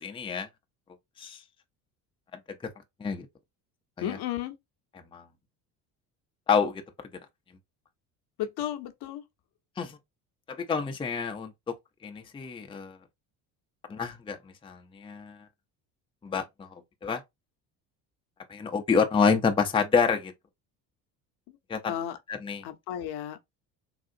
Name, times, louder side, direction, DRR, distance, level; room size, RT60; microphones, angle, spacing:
voice 1, 0.0-0.5 1.2-1.4 3.0-3.3 4.0-4.2 5.1-5.2 6.5-6.8 9.8-10.0 10.5-11.7 12.0-13.0 13.9-15.4 16.2-17.2 18.5-20.3 21.7-21.9 22.3-22.6, left 5 dB, 10° left, 0.5 m, -28 dB
voice 2, 4.0-4.5 8.4-9.2 21.5-21.6 21.9-22.2 22.6-23.4, left 11 dB, 60° left, 0.8 m, -33 dB
3.7 x 2.4 x 2.5 m
supercardioid pair, 75°, 43 cm